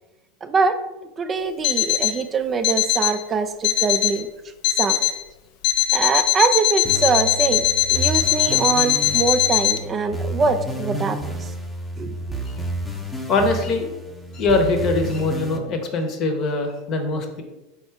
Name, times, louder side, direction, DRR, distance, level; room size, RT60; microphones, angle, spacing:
voice 1, 0.4-0.8 1.2-4.3 4.8-5.0 5.9-7.6 7.9-11.5 12.0-12.2, right 5 dB, 30° right, 9 dB, 0.3 m, -23 dB
Alarm, 1.6-2.2 2.6-3.2 3.6-4.2 4.6-5.2 5.6-9.8, left 14 dB, 65° left, 0.4 m, -20 dB
sound 1, 6.8-15.6, equal, 5° left, 0.7 m, -30 dB
voice 2, 13.3-13.9 14.3-17.4, left 3 dB, 45° left, 4 dB, 0.8 m, -22 dB
4.2 x 2.4 x 4.4 m, 1.0 s
hypercardioid pair, 100°, 0 cm